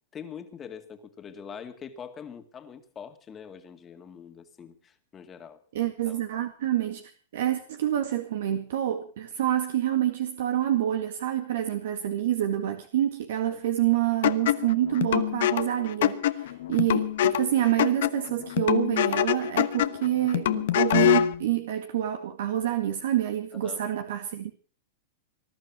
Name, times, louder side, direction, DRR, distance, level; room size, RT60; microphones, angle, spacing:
voice 1, 0.1-5.6 5.9-6.2 13.5-13.6 23.5-23.8, left 7 dB, 20° left, 2.1 m, -44 dB
voice 2, 5.7-7.0 7.3-24.5, right 12 dB, 70° right, 2.0 m, -27 dB
sound 1, 14.2-21.4, left 12 dB, 70° left, 1.1 m, -25 dB
20.0 x 11.5 x 6.0 m
hypercardioid pair, 135°, 0 cm